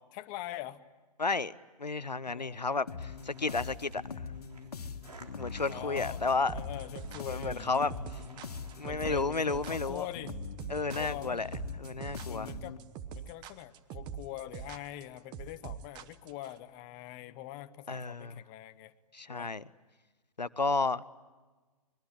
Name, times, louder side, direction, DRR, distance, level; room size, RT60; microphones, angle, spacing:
voice 1, 0.1-0.8 2.3-2.6 5.7-8.4 8.8-10.4 10.9-11.4 12.3-12.8 13.1-18.9 19.3-19.5, left 14 dB, 25° left, 11 dB, 1.0 m, -44 dB
voice 2, 1.2-1.5 1.8-4.0 5.4-6.6 7.3-8.2 8.8-10.1 10.7-11.5 11.8-12.5 17.9-18.4 19.1-19.6 20.4-21.0, left 3 dB, 90° left, 17 dB, 0.8 m, -32 dB
sound 1, 2.9-12.8, left 5 dB, 65° left, 1.9 m, -42 dB
sound 2, 3.0-9.5, right 3 dB, 70° right, 3.7 m, -56 dB
sound 3, 6.5-16.5, right 8 dB, 20° right, 1.1 m, -43 dB
25.5 x 22.0 x 10.0 m, 1.3 s
figure-of-eight pair, 125°, 21 cm